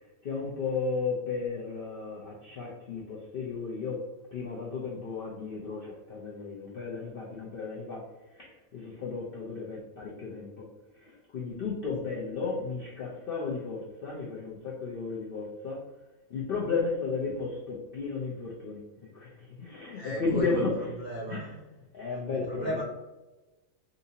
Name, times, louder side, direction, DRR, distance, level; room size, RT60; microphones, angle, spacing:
voice 1, 0.2-4.0 4.3-8.1 8.3-10.7 11.0-15.9 16.3-18.8 19.1-20.8 21.3-21.5 21.9-22.8, left 4 dB, 55° left, -4 dB, 0.6 m, -34 dB
voice 2, 19.9-21.4 22.5-22.8, right 2 dB, 55° right, -4 dB, 0.5 m, -34 dB
3.9 x 2.6 x 2.7 m, 1.1 s
omnidirectional pair, 1.5 m